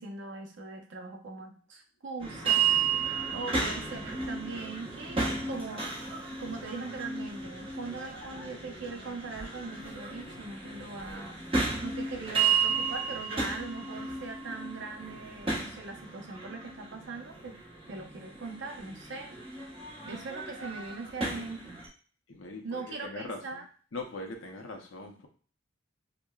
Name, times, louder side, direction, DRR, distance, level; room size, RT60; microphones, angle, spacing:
voice 1, 0.0-5.9 6.4-17.6 17.9-19.4 20.0-21.8 22.6-23.6, right 4 dB, 65° right, 3 dB, 0.7 m, -41 dB
sound 1, 2.2-21.9, right 5 dB, 30° right, 1.0 m, -33 dB
voice 2, 22.3-23.4 23.9-25.3, left 2 dB, 80° left, 3 dB, 0.7 m, -40 dB
5.0 x 2.1 x 2.3 m, 0.41 s
head